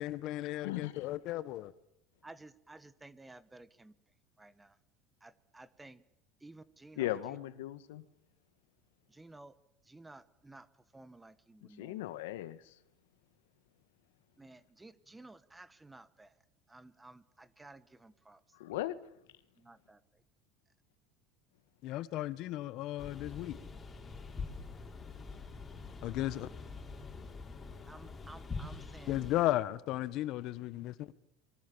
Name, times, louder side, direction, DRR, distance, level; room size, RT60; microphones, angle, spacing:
voice 1, 0.0-1.7 21.8-23.6 26.0-26.5 29.1-31.1, left 15 dB, 55° left, 1.5 m, -35 dB
voice 2, 0.6-1.1 7.0-8.0 11.8-12.7 18.5-18.9, left 15 dB, 85° left, 1.7 m, -38 dB
voice 3, 2.2-3.9 4.4-4.8 5.2-6.0 6.4-7.4 9.1-9.6 9.8-10.7 10.9-12.1 14.4-16.3 16.7-18.4 18.7-18.9 19.6-20.2 26.3-26.5 27.9-29.5, right 2 dB, 10° right, 1.4 m, -54 dB
sound 1, 23.0-29.4, left 4 dB, 20° left, 6.3 m, -45 dB
28.0 x 23.5 x 7.2 m
supercardioid pair, 120°, 0 cm